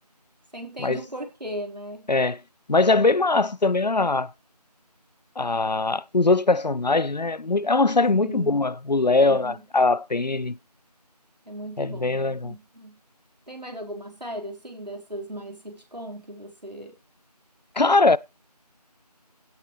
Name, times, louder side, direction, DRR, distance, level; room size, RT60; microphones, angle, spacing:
voice 1, 0.5-2.1 8.2-8.6 9.2-9.6 11.5-13.0 13.5-17.0, right 1 dB, 80° right, 4.3 m, -37 dB
voice 2, 2.1-2.4 2.7-4.3 5.4-10.6 11.8-12.5 17.8-18.2, left 3 dB, 85° left, 0.6 m, -21 dB
16.5 x 7.0 x 3.2 m
figure-of-eight pair, 180°, 21 cm